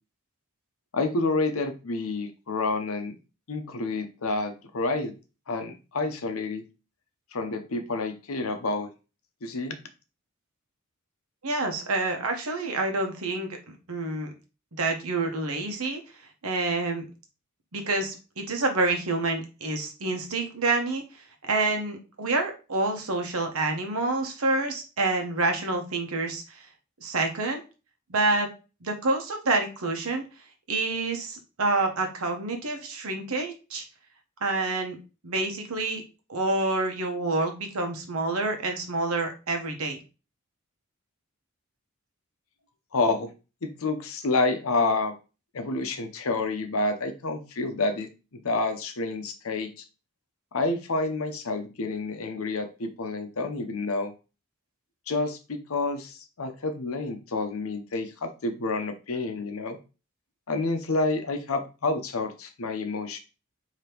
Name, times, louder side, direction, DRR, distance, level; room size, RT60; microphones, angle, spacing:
voice 1, 0.9-3.1 3.5-5.1 5.5-6.6 7.3-8.9 9.4-9.8 42.9-43.3 43.6-45.1 45.5-49.8 50.5-54.1 55.1-59.8 60.5-63.2, left 3 dB, 75° left, 7 dB, 0.7 m, -29 dB
voice 2, 11.4-13.5 13.9-14.3 14.8-16.0 16.4-17.0 17.7-21.0 21.4-26.7 27.0-27.6 28.1-28.5 28.8-30.2 30.7-33.8 34.4-35.0 35.2-36.0 36.3-40.0, right 3 dB, 85° right, 4 dB, 1.0 m, -27 dB
5.1 x 2.9 x 2.9 m, 0.31 s
head